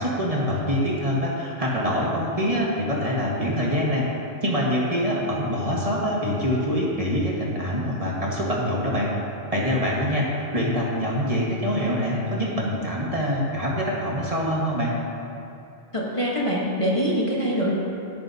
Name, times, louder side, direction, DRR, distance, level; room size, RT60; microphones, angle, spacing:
voice 1, 0.0-4.1 4.4-9.1 9.5-15.0, equal, 30° right, -5 dB, 1.7 m, -25 dB
voice 2, 15.9-17.7, equal, 30° left, -5 dB, 1.3 m, -24 dB
17.0 x 8.7 x 2.8 m, 2.7 s
omnidirectional pair, 1.1 m